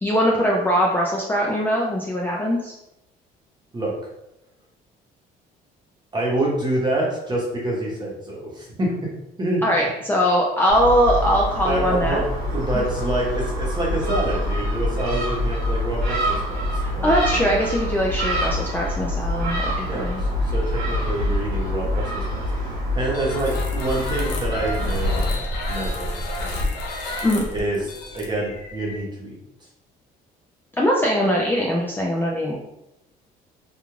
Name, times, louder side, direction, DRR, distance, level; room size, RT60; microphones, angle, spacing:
voice 1, 0.0-2.7 9.6-12.2 12.7-12.8 16.8-20.2 27.2-27.5 30.8-32.6, equal, 10° left, -3 dB, 0.3 m, -21 dB
voice 2, 6.1-9.0 9.4-9.9 11.6-17.1 17.5-17.6 19.9-25.3 25.7-26.6 27.5-27.8 28.1-29.4, right 1 dB, 25° right, -3 dB, 0.9 m, -27 dB
Gull seagull, 10.7-25.3, left 1 dB, 80° right, 0.9 m, -26 dB
sound 1, 23.1-29.0, left 1 dB, 80° left, 0.6 m, -29 dB
2.4 x 2.3 x 3.1 m, 0.88 s
cardioid pair, 110°, 17 cm